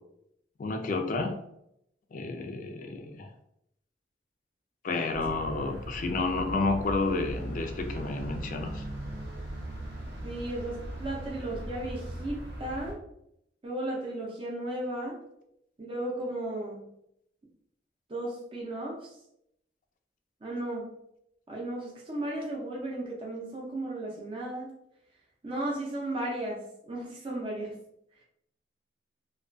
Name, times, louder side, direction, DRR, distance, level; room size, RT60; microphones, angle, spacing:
voice 1, 0.6-1.4 2.1-3.3 4.8-8.8, left 3 dB, 50° left, 5 dB, 0.4 m, -30 dB
sound 1, 5.1-12.9, right 1 dB, 75° right, 0.6 m, -39 dB
voice 2, 10.2-13.0 13.6-15.2 15.8-16.8 18.1-19.2 20.4-20.9 21.5-24.7 25.4-27.8, right 1 dB, 30° right, -3 dB, 0.5 m, -35 dB
2.3 x 2.2 x 2.4 m, 0.76 s
head